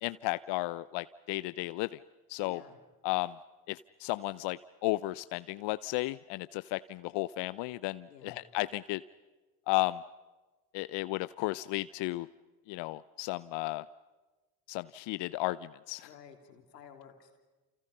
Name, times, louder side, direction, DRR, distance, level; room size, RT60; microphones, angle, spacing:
voice 1, 0.0-2.0 2.3-2.6 3.0-3.4 3.7-9.0 9.7-10.0 10.7-12.3 12.7-13.9 14.7-16.1, left 19 dB, 60° left, 16 dB, 0.7 m, -34 dB
voice 2, 2.4-2.8 8.1-8.4 16.0-17.4, left 7 dB, 90° left, 5 dB, 2.9 m, -53 dB
29.0 x 29.0 x 5.5 m, 1.2 s
hypercardioid pair, 55°, 47 cm